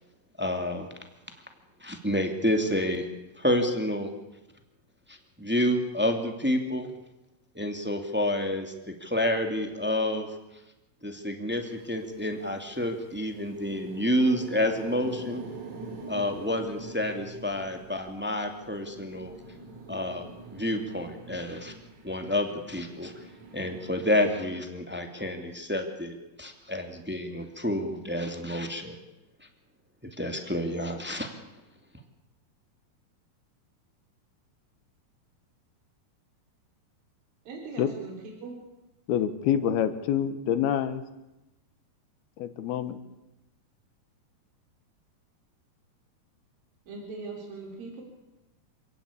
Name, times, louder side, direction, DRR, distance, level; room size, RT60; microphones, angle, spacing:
voice 1, 0.4-0.9 1.8-3.1 3.4-4.1 5.1-6.9 7.5-10.3 11.0-15.4 16.1-19.3 19.9-21.7 22.0-23.1 23.5-28.9 30.0-31.3, left 1 dB, 5° right, 4 dB, 1.6 m, -29 dB
sound 1, 11.5-24.1, right 3 dB, 45° right, 3.9 m, -45 dB
voice 2, 37.5-38.2 38.4-38.5 46.9-48.0, right 3 dB, 65° right, 0 dB, 5.5 m, -40 dB
voice 3, 39.1-41.0 42.4-43.0, left 9 dB, 80° left, 11 dB, 3.2 m, -26 dB
27.5 x 17.5 x 8.6 m, 0.99 s
omnidirectional pair, 4.5 m